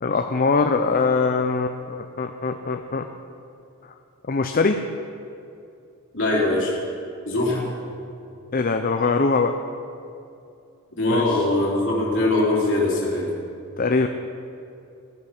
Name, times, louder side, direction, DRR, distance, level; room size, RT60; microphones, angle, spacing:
voice 1, 0.0-3.1 4.3-4.8 8.5-9.5 11.1-11.5 13.8-14.1, left 4 dB, 40° left, 6 dB, 0.5 m, -22 dB
voice 2, 6.1-6.7 7.3-7.7 10.9-13.3, left 2 dB, 60° left, -4 dB, 3.5 m, -22 dB
15.5 x 10.5 x 6.0 m, 2.6 s
head